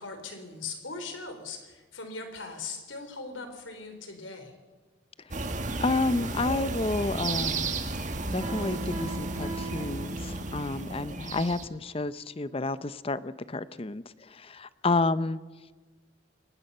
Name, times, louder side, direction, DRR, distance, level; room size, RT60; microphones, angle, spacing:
voice 1, 0.0-4.5, left 4 dB, 85° left, 6 dB, 4.1 m, -40 dB
sound 1, 5.3-11.7, right 2 dB, 40° right, 1.7 m, -33 dB
voice 2, 5.8-7.7 8.3-15.4, left 3 dB, 30° left, 15 dB, 0.7 m, -30 dB
Piano, 8.4-10.7, right 4 dB, 25° right, 6.8 m, -40 dB
24.0 x 19.5 x 5.6 m, 1.3 s
head